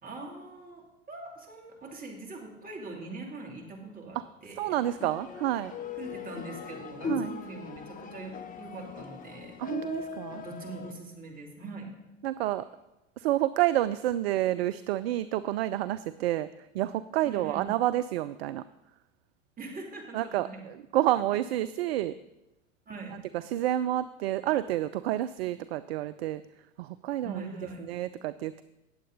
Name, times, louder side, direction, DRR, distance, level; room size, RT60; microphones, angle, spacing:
voice 1, 0.0-4.2 4.4-4.7 6.0-9.6 10.3-11.9 17.2-17.7 19.6-20.7 21.3-21.4 22.9-23.1 27.2-27.8, right 3 dB, 20° right, 0 dB, 3.0 m, -42 dB
voice 2, 4.6-5.7 7.1-7.3 9.6-10.4 12.2-12.6 13.2-18.6 20.1-22.1 23.3-26.4 26.8-27.5 27.8-28.6, right 14 dB, 55° right, 15 dB, 0.5 m, -29 dB
sound 1, 4.8-10.9, left 5 dB, 20° left, 0.9 m, -39 dB
18.0 x 7.7 x 3.9 m, 0.98 s
figure-of-eight pair, 85°, 38 cm